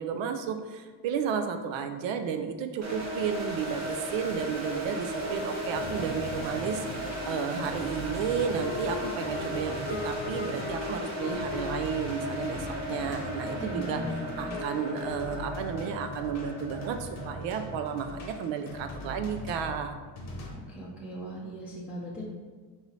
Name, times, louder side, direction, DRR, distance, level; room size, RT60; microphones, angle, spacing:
voice 1, 0.0-14.0 14.4-20.0, right 7 dB, 70° right, 7 dB, 0.5 m, -33 dB
sound 1, 2.8-19.6, equal, 35° right, 0.9 m, -36 dB
sound 2, 5.2-15.6, left 4 dB, 80° left, 0.7 m, -40 dB
sound 3, 5.7-20.5, left 1 dB, 35° left, 0.9 m, -42 dB
voice 2, 13.5-14.1 14.4-14.6 20.7-22.2, equal, 5° right, -6 dB, 0.5 m, -38 dB
5.4 x 2.7 x 3.1 m, 1.4 s
cardioid pair, 130°, 47 cm